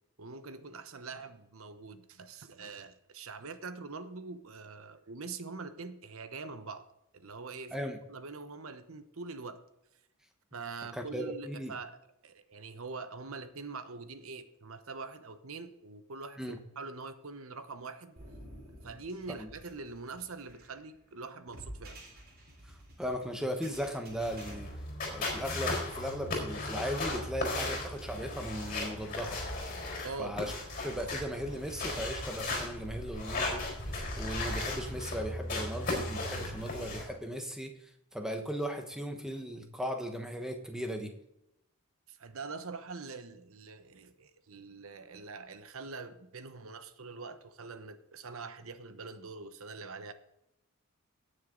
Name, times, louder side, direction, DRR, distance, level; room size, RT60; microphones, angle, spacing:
voice 1, 0.2-6.9 7.1-9.6 10.5-12.0 12.2-18.2 18.8-22.0 30.0-30.4 42.1-50.1, right 4 dB, 70° right, 10 dB, 1.0 m, -44 dB
voice 2, 10.9-11.8 16.4-16.6 19.4-19.5 22.6-22.7 23.0-24.7 25.1-29.4 30.2-30.5 30.8-33.7 34.2-41.1, equal, 5° right, 4 dB, 1.2 m, -37 dB
sound 1, 18.2-24.6, right 1 dB, 45° right, 3.5 m, -51 dB
sound 2, 24.2-37.0, left 2 dB, 40° left, 4.3 m, -36 dB
18.0 x 6.6 x 3.9 m, 0.86 s
head